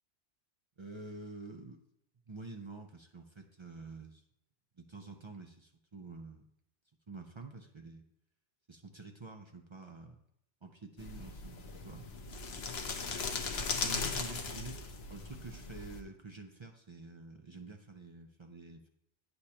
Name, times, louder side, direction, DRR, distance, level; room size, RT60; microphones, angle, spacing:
voice 1, 0.8-1.8 2.3-4.2 4.8-6.5 7.1-8.1 8.7-10.2 10.6-12.1 13.1-13.2 13.8-14.8 15.1-18.9, right 3 dB, 40° right, 4 dB, 0.4 m, -48 dB
sound 1, 11.0-16.0, left 4 dB, 65° left, 1.0 m, -38 dB
9.5 x 6.6 x 2.9 m, 0.77 s
omnidirectional pair, 1.2 m